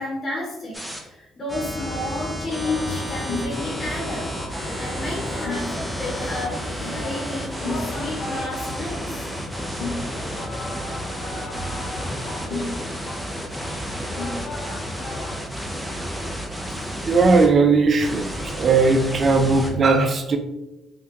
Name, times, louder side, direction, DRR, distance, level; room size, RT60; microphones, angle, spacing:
voice 1, 0.0-9.3, left 2 dB, 40° left, -4 dB, 1.0 m, -32 dB
sound 1, 0.7-1.0 1.5-17.5 18.0-19.7, equal, 5° right, 0.6 m, -32 dB
sound 2, 1.8-15.4, left 2 dB, 65° left, 0.7 m, -34 dB
voice 2, 17.1-20.4, right 4 dB, 45° right, 6 dB, 0.4 m, -18 dB
3.3 x 2.2 x 2.9 m, 0.96 s
hypercardioid pair, 55°, 0 cm